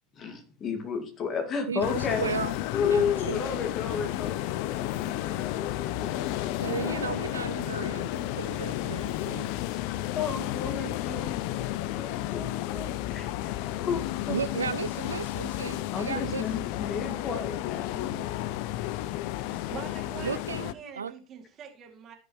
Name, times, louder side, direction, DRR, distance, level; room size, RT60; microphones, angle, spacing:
voice 1, 0.1-2.3 2.7-7.0 9.7-11.7 11.9-14.4 15.9-18.5, left 5 dB, 40° left, 6 dB, 2.0 m, -33 dB
voice 2, 1.7-2.6 2.9-3.4 6.6-9.5 14.3-16.4 19.5-19.6 20.2-21.1, right 6 dB, 90° right, 14 dB, 0.3 m, -34 dB
sound 1, 1.8-20.7, left 14 dB, 60° left, 0.5 m, -32 dB
voice 3, 19.5-22.1, right 7 dB, 40° right, 2 dB, 2.3 m, -44 dB
15.0 x 5.3 x 3.0 m, 0.36 s
hypercardioid pair, 85°, 0 cm